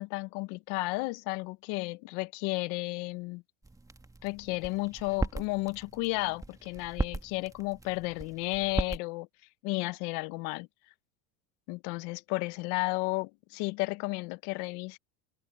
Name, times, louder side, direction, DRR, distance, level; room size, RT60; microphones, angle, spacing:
voice 1, 0.0-3.4 4.2-9.3 9.6-10.7 11.7-15.0, left 25 dB, 65° left, 1.1 m, -33 dB
sound 1, 3.6-9.0, right 2 dB, 10° right, 1.7 m, -38 dB
supercardioid pair, 115°, 42 cm